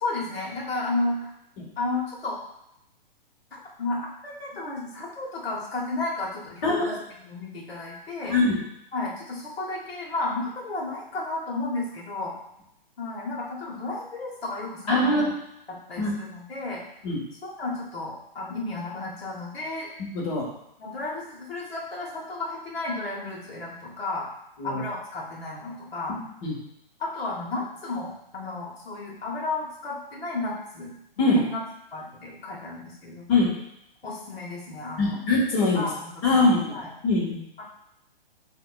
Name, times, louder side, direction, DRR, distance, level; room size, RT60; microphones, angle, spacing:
voice 1, 0.0-1.3 1.8-2.4 3.5-8.3 8.9-12.4 13.0-15.3 15.7-16.8 17.4-19.9 20.8-24.3 24.6-26.2 27.0-31.6 31.9-33.4 34.0-35.2 35.7-36.9 37.6-37.7, left 2 dB, 80° left, -3 dB, 1.4 m, -33 dB
voice 2, 6.6-7.0 8.3-8.6 14.9-15.3 16.0-16.1 17.0-17.2 20.0-20.4 24.6-24.8 26.1-26.5 31.2-31.4 33.3-33.5 35.0-35.9 36.2-36.6 37.0-37.4, left 2 dB, 35° left, -3 dB, 1.6 m, -22 dB
7.5 x 2.9 x 2.4 m, 0.80 s
figure-of-eight pair, 130°, 30 cm